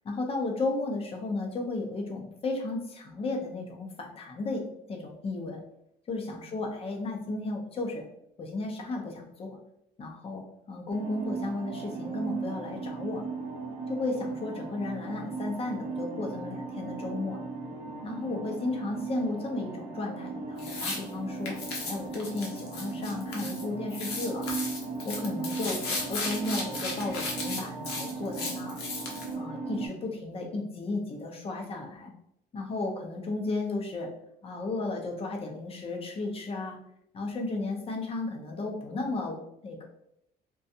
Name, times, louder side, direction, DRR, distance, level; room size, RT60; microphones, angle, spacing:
voice 1, 0.0-4.6 4.9-5.6 6.1-8.1 8.4-9.6 10.0-13.2 13.9-17.4 18.0-21.6 21.9-24.5 25.0-28.8 29.3-32.1 32.5-34.1 34.4-36.8 37.1-39.4 39.6-39.9, left 2 dB, 35° left, 2 dB, 0.6 m, -34 dB
sound 1, 10.9-29.9, right 4 dB, 60° right, 0.7 m, -37 dB
sound 2, 20.6-21.0 21.4-23.6 23.9-29.3, left 3 dB, 85° left, 0.7 m, -35 dB
2.5 x 2.2 x 2.7 m, 0.76 s
cardioid pair, 110°, 17 cm